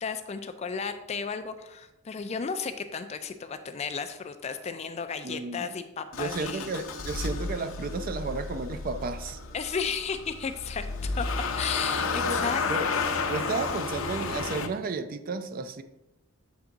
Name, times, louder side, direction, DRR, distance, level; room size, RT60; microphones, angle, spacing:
voice 1, 0.0-6.7 9.5-11.3 11.6-12.6 13.0-13.6, left 6 dB, 30° left, 0.3 m, -34 dB
voice 2, 5.2-5.7 6.1-9.4 12.2-12.9 13.3-15.8, right 3 dB, 40° right, 0.4 m, -33 dB
Motor vehicle (road) / Engine starting, 6.1-14.7, left 4 dB, 70° left, 0.6 m, -32 dB
7.1 x 3.5 x 3.8 m
head